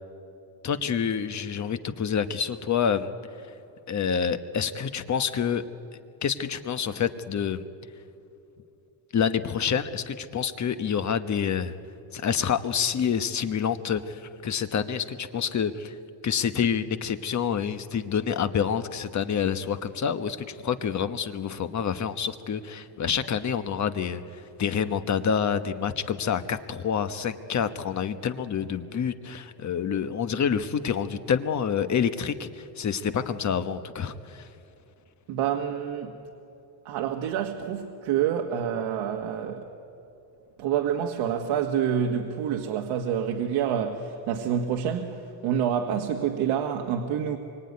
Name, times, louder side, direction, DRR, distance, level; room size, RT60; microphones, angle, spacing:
voice 1, 0.6-3.1 3.9-5.6 6.2-7.6 9.1-11.7 12.1-15.9 16.2-34.5, left 7 dB, 40° left, 1.2 m, -27 dB
voice 2, 35.3-36.2 36.9-39.7 40.6-47.4, right 8 dB, 85° right, 1.8 m, -27 dB
26.5 x 23.5 x 9.6 m
cardioid pair, 135°, 46 cm